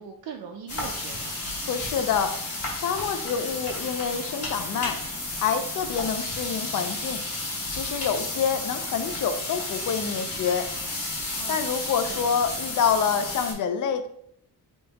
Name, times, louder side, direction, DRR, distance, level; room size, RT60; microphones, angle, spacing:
voice 1, 0.0-1.4 11.4-12.3, right 7 dB, 70° right, 2 dB, 0.5 m, -41 dB
sound 1, 0.7-13.5, left 2 dB, 35° left, 1.4 m, -32 dB
voice 2, 1.7-2.4 2.7-5.0 5.4-7.2 7.7-10.7 11.5-14.1, left 7 dB, 55° left, 9 dB, 0.5 m, -27 dB
3.5 x 2.8 x 4.0 m, 0.69 s
wide cardioid pair, 155°, 39 cm